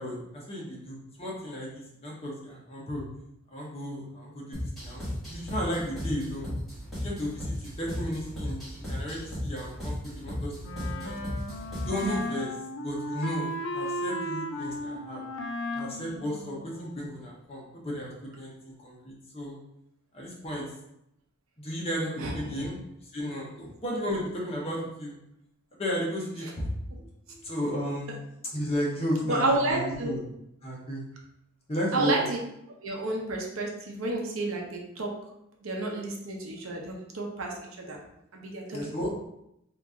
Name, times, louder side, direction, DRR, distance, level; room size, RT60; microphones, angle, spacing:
voice 1, 0.0-3.0 3.5-6.5 7.0-11.1 11.8-15.2 15.7-19.6 20.1-20.7 21.6-25.1 25.7-26.7 27.0-27.1 27.4-28.1 28.5-30.2 30.6-31.0 31.7-32.1 38.7-39.1, equal, 30° left, -4 dB, 0.8 m, -34 dB
sound 1, 4.5-12.2, left 1 dB, ahead, 1.3 m, -36 dB
Wind instrument woodwind instrument, 10.6-17.2, equal, 65° left, 0.5 m, -35 dB
voice 2, 22.2-22.7 29.3-30.1 31.9-32.4 32.8-35.1 35.6-38.0 38.3-39.1, right 2 dB, 75° right, 0 dB, 0.7 m, -30 dB
2.9 x 2.5 x 3.5 m, 0.81 s
head